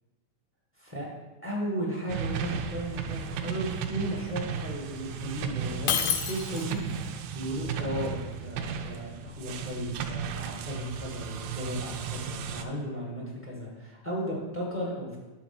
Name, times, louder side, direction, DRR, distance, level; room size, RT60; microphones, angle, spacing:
voice 1, 1.4-15.2, equal, 20° right, -4 dB, 0.3 m, -35 dB
sound 1, 2.1-12.6, right 7 dB, 85° right, 2.3 m, -35 dB
Shatter, 5.9-6.9, left 8 dB, 90° left, 1.5 m, -28 dB
9.4 x 3.9 x 6.0 m, 1.1 s
omnidirectional pair, 4.0 m